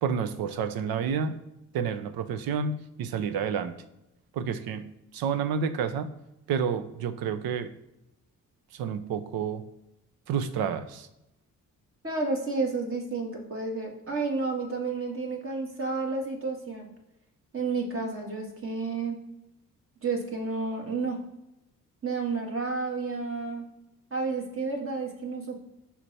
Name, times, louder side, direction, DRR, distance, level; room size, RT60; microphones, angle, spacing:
voice 1, 0.0-1.4 1.7-3.8 4.3-4.9 5.1-6.1 6.5-7.7 8.7-9.6 10.3-11.1, right 7 dB, 80° right, 12 dB, 0.7 m, -29 dB
voice 2, 12.0-16.9 17.5-19.2 20.0-21.2 22.0-23.6 24.1-25.5, right 3 dB, 35° right, 1 dB, 1.9 m, -31 dB
5.7 x 4.4 x 4.2 m, 0.90 s
supercardioid pair, 55°, 36 cm